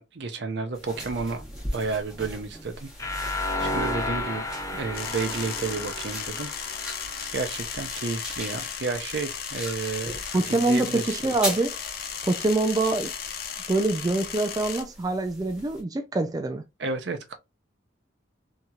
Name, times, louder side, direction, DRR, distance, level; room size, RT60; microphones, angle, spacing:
voice 1, 0.0-1.4 1.7-2.9 3.3-4.4 4.7-6.5 7.3-10.2 10.5-11.2 16.8-17.3, right 4 dB, 65° right, 0.6 m, -31 dB
sound 1, 0.7-15.8, equal, 5° right, 1.2 m, -40 dB
sound 2, 3.0-7.9, left 1 dB, 15° left, 0.6 m, -32 dB
sound 3, 4.9-14.8, left 7 dB, 55° left, 0.6 m, -35 dB
voice 2, 10.3-11.7 12.2-13.1 13.7-16.6, right 2 dB, 20° right, 0.3 m, -25 dB
2.9 x 2.8 x 2.3 m
head